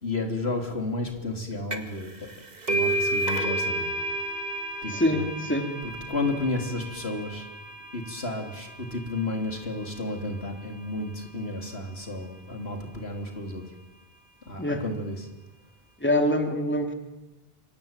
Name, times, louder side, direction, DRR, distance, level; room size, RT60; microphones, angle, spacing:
voice 1, 0.0-2.3 2.7-3.9 4.8-5.3 6.1-7.5 7.9-13.6 14.5-15.3, left 2 dB, 80° left, 4 dB, 3.8 m, -32 dB
sound 1, 1.7-2.0 2.3-9.6, right 1 dB, 40° right, 2.2 m, -31 dB
voice 2, 4.9-5.7 14.6-14.8 16.0-16.9, left 1 dB, 10° left, 4 dB, 2.9 m, -25 dB
27.0 x 23.5 x 9.1 m, 1.1 s
omnidirectional pair, 1.1 m